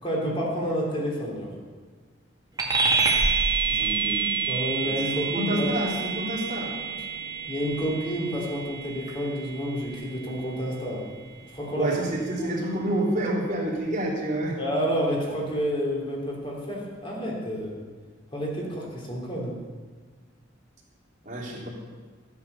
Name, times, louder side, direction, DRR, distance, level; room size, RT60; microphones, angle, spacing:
voice 1, 0.0-1.5 4.5-5.8 7.5-11.1 11.5-11.9 12.4-12.5 14.6-17.8 18.3-19.6, equal, 30° left, -3 dB, 3.5 m, -29 dB
sound 1, 2.6-12.4, right 5 dB, 20° right, 2.2 m, -28 dB
voice 2, 3.7-4.3 5.3-6.7 11.8-14.6 21.2-21.7, right 1 dB, 40° right, -4 dB, 3.3 m, -28 dB
14.0 x 9.6 x 7.0 m, 1.5 s
head